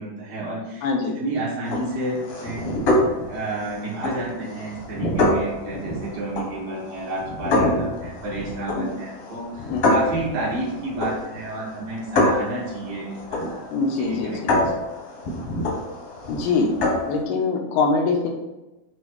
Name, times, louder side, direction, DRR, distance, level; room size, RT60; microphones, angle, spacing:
voice 1, 0.0-0.9 1.2-2.7 3.3-14.7, right 2 dB, 70° right, -5 dB, 3.0 m, -31 dB
voice 2, 0.8-1.2 8.7-8.9 9.7-10.0 13.7-14.5 16.3-16.7 17.1-18.3, left 4 dB, 85° left, 2 dB, 2.9 m, -23 dB
sound 1, 1.6-17.2, left 1 dB, 65° left, 1.5 m, -26 dB
8.1 x 2.7 x 4.6 m, 1.0 s
omnidirectional pair, 4.5 m